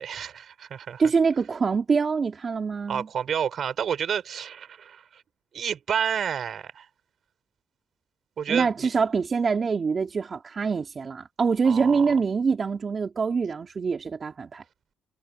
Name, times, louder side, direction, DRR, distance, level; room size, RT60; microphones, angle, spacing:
voice 1, 0.0-1.0 2.9-5.2 5.5-6.9 8.4-8.9 11.6-12.1, right 8 dB, 60° right, 5.7 m, -30 dB
voice 2, 1.0-3.1 8.5-14.6, right 5 dB, 40° right, 4.0 m, -25 dB
cardioid pair, 90°, 0 cm